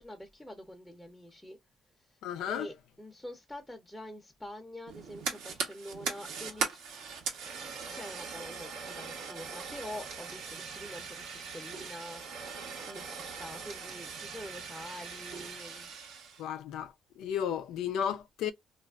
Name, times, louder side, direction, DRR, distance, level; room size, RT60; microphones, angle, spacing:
voice 1, 0.0-1.6 2.0-2.2 2.5-6.8 7.9-15.9, left 1 dB, 5° left, 0.7 m, -46 dB
voice 2, 2.2-2.7 16.4-18.5, left 9 dB, 90° left, 0.4 m, -34 dB
Fire, 4.9-16.4, right 5 dB, 90° right, 1.0 m, -40 dB
3.1 x 2.4 x 2.3 m
cardioid pair, 90°, 0 cm